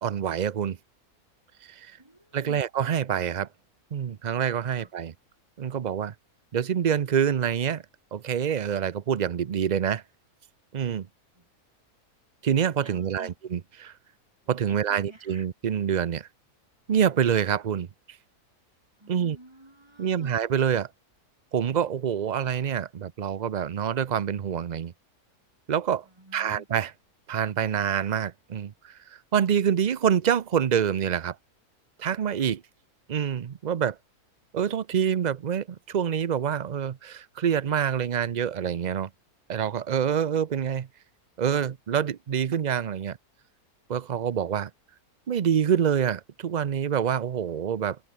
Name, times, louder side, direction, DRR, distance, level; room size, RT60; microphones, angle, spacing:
voice 1, 0.0-0.8 1.6-2.0 2.3-3.5 3.9-5.1 5.6-6.1 6.5-7.8 8.1-10.0 10.7-11.1 12.4-13.9 14.5-16.3 16.9-17.9 19.1-19.4 20.0-20.9 21.5-24.9 25.7-26.0 26.3-26.9 27.3-31.4 32.0-32.6 33.1-34.0 34.5-39.1 39.5-40.9 41.4-43.2 43.9-44.7 45.3-48.0, right 8 dB, 80° right, 0.4 m, -26 dB
voice 2, 2.0-2.6 4.8-4.9 11.3-11.5 12.8-13.4 14.7-15.5 19.0-20.3 22.3-22.4 26.0-26.7, right 1 dB, 15° right, 3.6 m, -49 dB
open air
omnidirectional pair, 1.6 m